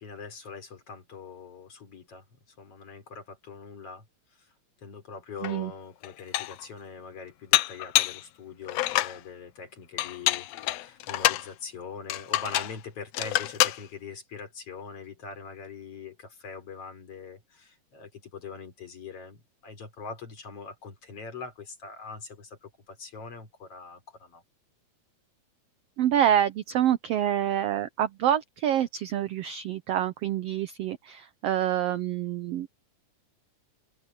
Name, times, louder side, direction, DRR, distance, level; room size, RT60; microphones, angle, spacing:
voice 1, 0.0-2.2 2.6-4.0 4.4-4.5 4.8-24.4, left 5 dB, 50° left, 4.5 m, -42 dB
Dishes pots and pans, 5.4-5.5 6.0-6.6 7.5-8.2 8.7-9.2 10.0-11.5 12.1-12.8 13.1-13.8, left 15 dB, 80° left, 1.5 m, -26 dB
voice 2, 26.0-32.7, right 11 dB, 80° right, 1.4 m, -27 dB
open air
omnidirectional pair, 3.6 m